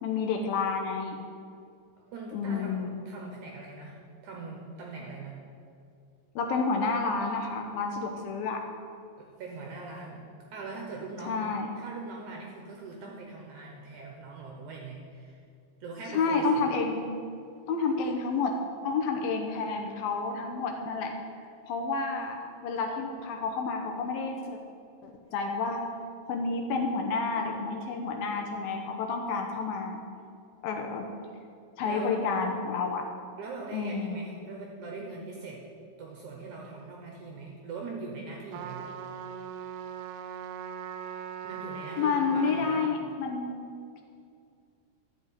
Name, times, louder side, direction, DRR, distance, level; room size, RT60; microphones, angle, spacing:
voice 1, 0.0-1.2 2.3-2.9 6.4-8.6 11.2-11.7 16.1-17.0 17.7-21.2 21.6-24.6 25.0-25.9 26.3-30.0 30.6-31.1 31.8-33.1 33.7-34.3 42.0-43.7, left 4 dB, 75° left, 2 dB, 2.4 m, -30 dB
voice 2, 2.0-5.4 9.2-10.2 10.5-15.4 15.8-16.6 31.8-32.1 33.4-35.6 36.0-38.9 41.4-42.9, right 3 dB, 65° right, 0 dB, 2.1 m, -41 dB
Trumpet, 38.5-42.9, right 8 dB, 85° right, 2.7 m, -40 dB
12.0 x 6.1 x 8.9 m, 2.4 s
omnidirectional pair, 4.8 m